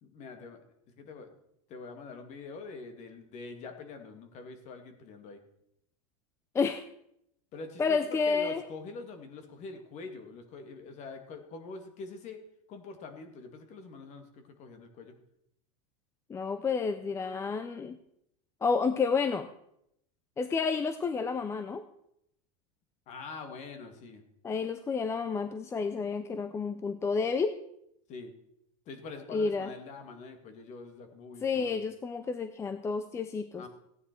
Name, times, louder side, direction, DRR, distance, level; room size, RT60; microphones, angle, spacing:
voice 1, 0.0-1.3 1.7-5.4 7.5-12.4 12.7-15.2 23.1-24.2 28.1-28.3 28.9-31.8 33.6-33.7, left 4 dB, 40° left, 7 dB, 2.1 m, -45 dB
voice 2, 6.5-6.9 7.8-8.6 16.3-18.0 18.6-19.5 20.4-21.8 24.4-27.6 29.3-29.7 31.4-33.6, left 5 dB, 15° left, 10 dB, 0.6 m, -30 dB
15.5 x 9.6 x 4.5 m, 0.76 s
supercardioid pair, 135°, 18 cm